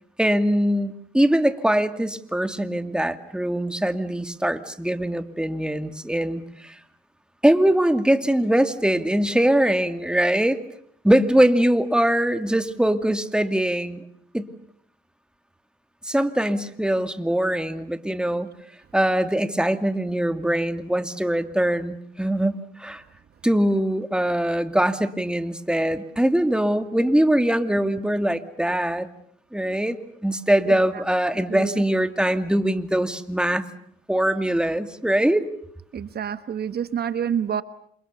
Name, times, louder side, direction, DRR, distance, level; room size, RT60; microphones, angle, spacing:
voice 1, 0.2-6.8 7.4-10.6 11.0-14.0 14.3-14.5 16.0-18.5 18.9-23.0 23.4-29.1 29.5-30.0 30.2-33.6 34.1-35.5, right 1 dB, 5° right, 9 dB, 2.4 m, -22 dB
voice 2, 31.5-31.8 35.9-37.6, right 8 dB, 55° right, 12 dB, 1.2 m, -27 dB
29.0 x 28.0 x 6.8 m, 0.67 s
cardioid pair, 90°, 20 cm